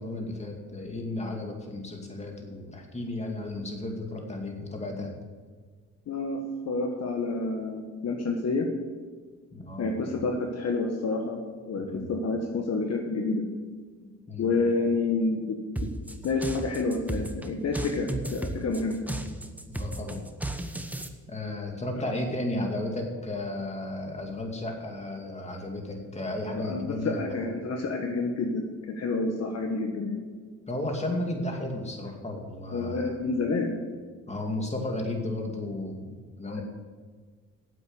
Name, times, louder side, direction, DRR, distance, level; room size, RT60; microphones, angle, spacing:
voice 1, 0.0-5.1 9.5-10.2 11.8-12.1 14.3-14.5 19.7-20.3 21.3-27.4 30.7-33.2 34.3-36.6, left 1 dB, 20° left, 2 dB, 2.4 m, -34 dB
voice 2, 6.1-8.7 9.8-11.4 11.7-13.4 14.4-15.9 16.2-19.0 26.5-30.2 32.7-33.8, left 3 dB, 55° left, 3 dB, 1.5 m, -29 dB
sound 1, 15.8-21.1, right 1 dB, 5° right, 1.0 m, -34 dB
9.5 x 7.9 x 8.0 m, 1.5 s
cardioid pair, 90°, 30 cm